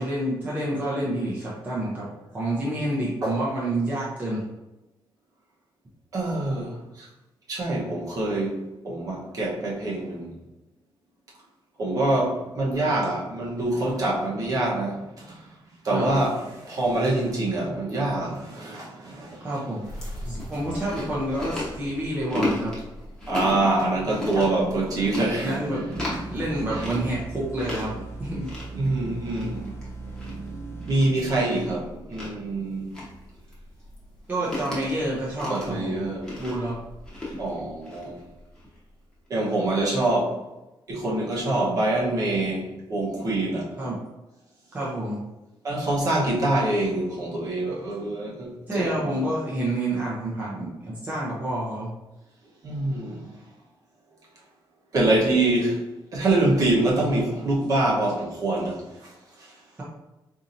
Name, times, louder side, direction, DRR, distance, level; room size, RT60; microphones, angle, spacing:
voice 1, 0.0-2.1 2.3-4.4 15.9-16.1 19.4-19.9 20.2-22.7 25.4-25.8 26.3-28.5 34.3-36.1 36.4-36.8 43.8-44.0 44.7-45.2 48.7-51.9, right 1 dB, 20° right, -7 dB, 0.6 m, -28 dB
voice 2, 6.1-7.1 7.5-8.6 8.8-10.3 11.8-15.5 15.8-19.5 23.3-26.9 28.7-32.9 35.5-36.4 37.4-38.2 39.3-40.4 40.9-43.7 45.6-49.2 52.6-53.3 54.9-55.8 56.1-58.8, right 2 dB, 40° right, -5 dB, 0.9 m, -25 dB
Chewing mastication, 19.8-38.8, left 1 dB, 5° left, 0.9 m, -36 dB
sound 1, 25.9-30.9, right 3 dB, 30° left, 0.4 m, -39 dB
4.1 x 2.7 x 2.6 m, 0.99 s
wide cardioid pair, 180°, 9 cm